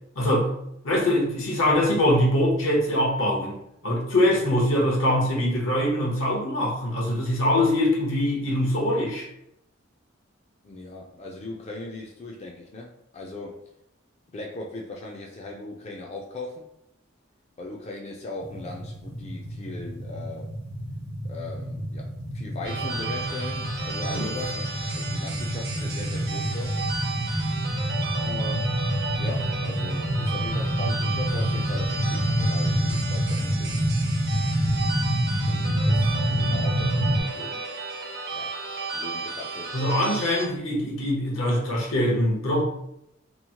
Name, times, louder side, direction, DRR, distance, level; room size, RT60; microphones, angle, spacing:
voice 1, 0.2-0.5 0.8-3.6 3.8-9.3 24.1-24.3 39.7-42.6, left 1 dB, 85° left, -2 dB, 0.8 m, -23 dB
voice 2, 10.6-13.6 14.3-16.6 17.6-20.5 21.2-26.8 28.2-28.8 29.2-33.8 35.5-37.7 38.3-38.5 38.9-39.7, left 2 dB, 30° left, -1 dB, 0.3 m, -39 dB
sound 1, 18.4-37.2, equal, 75° right, 1.0 m, -27 dB
sound 2, 22.6-40.5, right 4 dB, 50° right, 0.5 m, -34 dB
2.9 x 2.0 x 2.8 m, 0.80 s
head